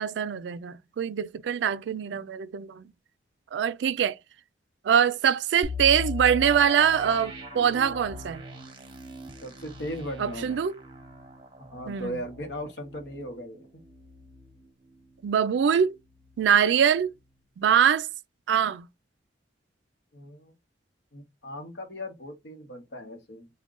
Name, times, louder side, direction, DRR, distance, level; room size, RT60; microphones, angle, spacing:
voice 1, 0.0-2.8 3.5-4.1 4.8-8.4 10.2-10.7 11.9-12.2 15.2-16.0 16.4-17.1 17.6-18.1 18.5-18.9, right 8 dB, 70° right, 0.3 m, -23 dB
sound 1, 5.6-15.4 15.7-15.8 16.3-16.5, left 3 dB, 25° right, 0.8 m, -40 dB
voice 2, 9.4-10.6 11.7-13.7 20.1-20.5 21.1-23.5, equal, 70° left, 0.9 m, -38 dB
3.6 x 2.2 x 3.7 m
head